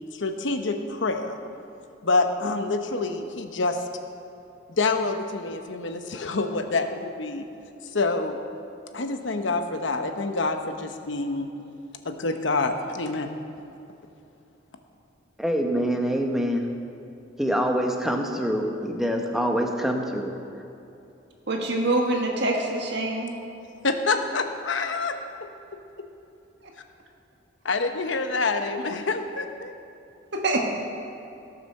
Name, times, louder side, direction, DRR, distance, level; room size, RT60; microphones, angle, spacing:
voice 1, 0.1-1.4 2.0-3.8 4.7-7.5 7.9-8.4 8.9-11.5 12.0-13.3 23.8-25.5 27.6-29.7, left 3 dB, 70° left, 6 dB, 1.0 m, -27 dB
voice 2, 15.4-16.7 17.4-20.3, equal, ahead, 2 dB, 1.0 m, -25 dB
voice 3, 21.5-23.3 30.3-30.6, right 2 dB, 60° right, 1 dB, 1.6 m, -25 dB
17.0 x 6.8 x 6.5 m, 2.8 s
head